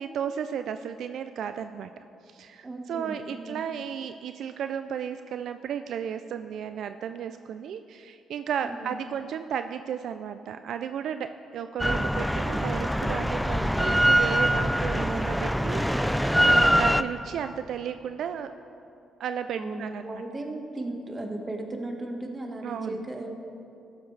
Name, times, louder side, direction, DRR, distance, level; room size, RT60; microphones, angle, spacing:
voice 1, 0.0-1.9 2.2-18.5 19.2-20.2 22.6-23.0, right 8 dB, 70° right, 9 dB, 0.3 m, -34 dB
voice 2, 2.6-3.6 8.6-8.9 13.4-13.8 19.5-23.3, right 2 dB, 25° right, 2 dB, 1.5 m, -36 dB
Drill, 11.8-17.0, equal, ahead, 0.4 m, -23 dB
14.0 x 12.0 x 3.3 m, 2.7 s
cardioid pair, 90°, 0 cm